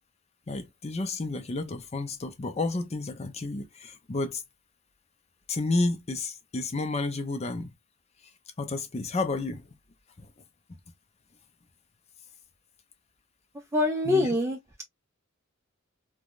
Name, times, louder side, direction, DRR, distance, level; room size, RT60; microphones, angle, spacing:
voice 1, 0.5-4.4 5.5-7.7 8.6-9.7 10.2-10.3 10.7-10.8 14.0-14.3, left 2 dB, 30° left, 0.5 m, -31 dB
voice 2, 13.7-14.6, left 2 dB, 15° right, 0.4 m, -24 dB
3.4 x 2.2 x 2.4 m
head